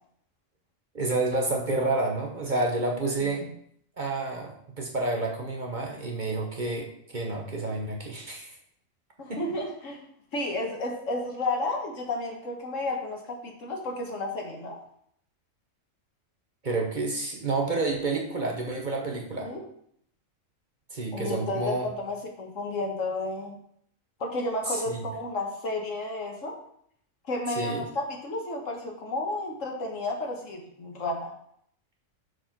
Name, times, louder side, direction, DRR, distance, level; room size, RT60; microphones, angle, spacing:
voice 1, 0.9-3.5 4.0-8.6 9.3-9.4 16.6-19.5 20.9-21.9 24.7-25.0 27.6-27.9, right 2 dB, 40° right, 0 dB, 1.1 m, -29 dB
voice 2, 9.2-10.0 10.3-14.8 19.4-19.6 21.1-23.6 24.2-26.6 27.3-31.3, left 2 dB, 70° left, 1 dB, 1.7 m, -32 dB
6.3 x 4.7 x 5.9 m, 0.69 s
omnidirectional pair, 1.4 m